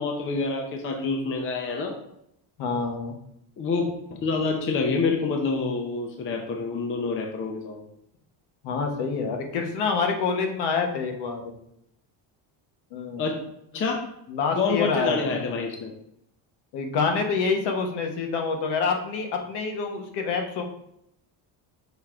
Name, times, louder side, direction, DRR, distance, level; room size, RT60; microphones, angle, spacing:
voice 1, 0.0-2.0 3.6-3.8 4.1-7.8 13.2-13.4 13.7-14.1 14.6-15.9, left 4 dB, 30° left, 2 dB, 0.6 m, -27 dB
voice 2, 2.6-3.2 8.6-11.5 12.9-13.3 14.3-15.1 16.7-20.6, left 5 dB, 65° left, 3 dB, 1.2 m, -27 dB
5.7 x 3.7 x 4.4 m, 0.75 s
cardioid pair, 180°, 44 cm